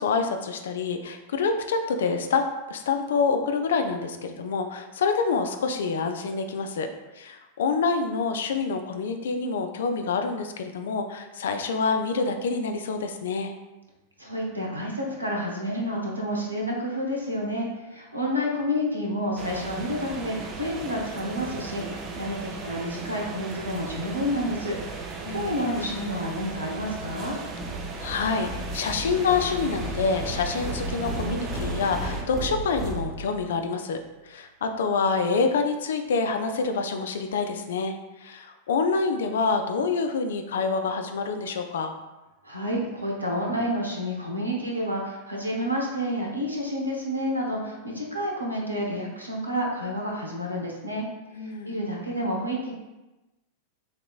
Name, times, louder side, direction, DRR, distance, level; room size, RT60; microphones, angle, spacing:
voice 1, 0.0-6.9 7.1-13.5 25.2-25.6 28.0-34.0 34.2-37.9 38.2-41.9 51.3-51.8, left 4 dB, 60° left, 6 dB, 0.4 m, -27 dB
voice 2, 14.2-24.8 25.0-27.4 42.4-51.0 51.4-52.7, equal, 85° right, -2 dB, 0.8 m, -29 dB
sound 1, 19.4-32.2, right 3 dB, 35° right, 0.6 m, -37 dB
sound 2, 27.6-33.6, right 1 dB, 5° right, 1.0 m, -34 dB
6.5 x 3.0 x 2.4 m, 1.0 s
figure-of-eight pair, 90°, 0 cm